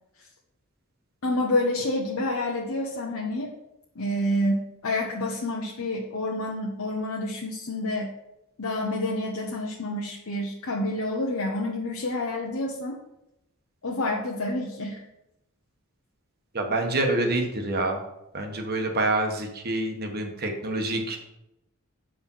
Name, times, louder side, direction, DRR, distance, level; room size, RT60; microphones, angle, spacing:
voice 1, 1.2-3.5 3.9-8.1 8.6-13.0 13.8-15.0, left 1 dB, 75° left, -1 dB, 0.9 m, -28 dB
voice 2, 16.5-18.0 18.3-21.2, right 2 dB, 45° right, 3 dB, 1.3 m, -27 dB
7.4 x 4.9 x 5.5 m, 0.87 s
head